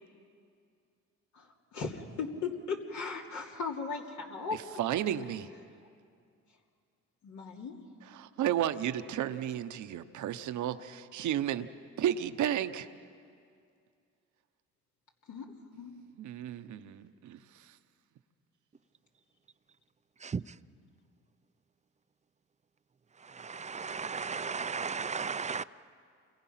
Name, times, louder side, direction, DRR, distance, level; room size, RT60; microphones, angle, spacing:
voice 1, 1.3-4.8 7.2-7.8 15.3-15.5 15.8-15.9, left 4 dB, 70° left, 0 dB, 2.8 m, -37 dB
voice 2, 4.8-5.5 8.1-11.7 12.0-12.9 16.2-17.7, right 11 dB, 75° right, 10 dB, 0.9 m, -33 dB
voice 3, 23.3-25.6, right 5 dB, 25° right, 15 dB, 0.5 m, -35 dB
29.0 x 22.5 x 5.8 m, 2.3 s
cardioid pair, 90°, 30 cm